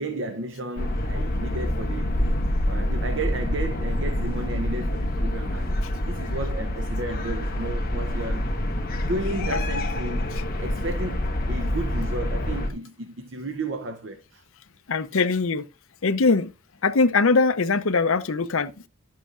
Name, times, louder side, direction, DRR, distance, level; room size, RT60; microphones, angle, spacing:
voice 1, 0.0-2.2 2.7-5.7 6.1-8.5 9.0-14.4, right 2 dB, 55° right, 0.7 m, -33 dB
sound 1, 0.8-12.7, left 1 dB, 40° left, 1.4 m, -26 dB
voice 2, 14.9-15.7 16.0-16.5 16.8-18.9, left 4 dB, 70° left, 0.7 m, -22 dB
11.0 x 7.5 x 2.5 m
head